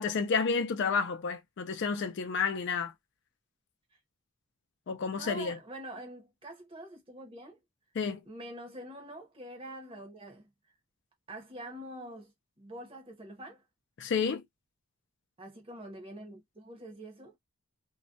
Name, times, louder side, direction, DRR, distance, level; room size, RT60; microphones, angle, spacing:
voice 1, 0.0-2.9 4.9-5.6 8.0-8.2 14.0-14.4, left 5 dB, 50° left, 0.4 m, -30 dB
voice 2, 5.1-7.6 8.2-10.5 11.3-12.3 12.6-13.6 15.4-17.4, right 1 dB, 25° right, 0.7 m, -45 dB
2.3 x 2.1 x 2.5 m
head